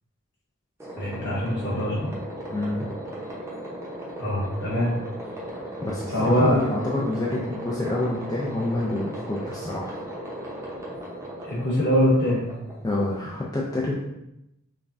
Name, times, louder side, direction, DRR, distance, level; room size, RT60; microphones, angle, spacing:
sound 1, 0.8-13.4, right 1 dB, 10° right, 0.7 m, -37 dB
voice 1, 1.0-2.0 4.2-4.9 6.1-6.6 11.4-12.4, equal, 50° left, -6 dB, 1.4 m, -23 dB
voice 2, 2.5-2.9 5.8-10.0 12.8-14.0, left 2 dB, 15° left, -5 dB, 0.4 m, -28 dB
5.2 x 2.2 x 2.5 m, 0.87 s
head